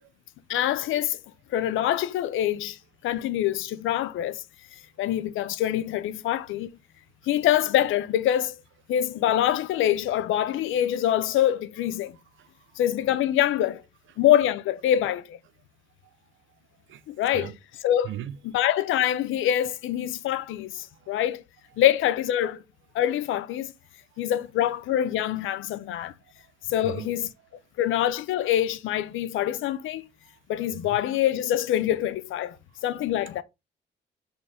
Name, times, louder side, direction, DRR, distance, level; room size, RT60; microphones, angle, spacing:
voice 1, 0.5-1.2 1.5-4.4 5.0-6.7 7.3-8.6 8.9-12.2 12.8-13.8 14.2-15.4 17.1-17.5 17.8-18.1 18.5-21.4 21.8-22.6 22.9-23.7 24.2-26.1 26.7-27.3 27.8-30.0 30.5-32.6 32.8-33.4, left 12 dB, 80° left, 0.6 m, -25 dB
voice 2, 11.9-12.5 13.0-13.1 14.1-14.2 16.9-17.0 17.3-17.6 18.0-18.4 21.1-21.3 21.7-22.0 25.9-26.1 26.7-27.1 30.8-31.0 33.3-33.4, right 11 dB, 80° right, 0.9 m, -40 dB
7.1 x 4.3 x 3.5 m
cardioid pair, 90°, 20 cm